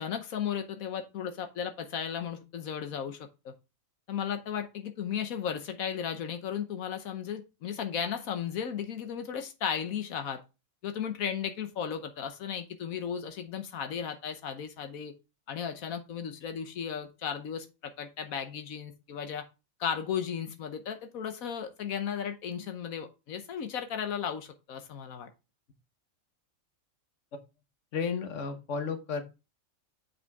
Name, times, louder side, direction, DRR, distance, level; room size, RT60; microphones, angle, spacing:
voice 1, 0.0-3.5 4.1-10.4 10.8-15.1 15.5-19.4 19.8-25.3, left 8 dB, 85° left, 7 dB, 1.3 m, -35 dB
voice 2, 27.9-29.2, left 5 dB, 65° left, 9 dB, 1.4 m, -32 dB
8.0 x 5.4 x 3.5 m, 0.28 s
omnidirectional pair, 1.4 m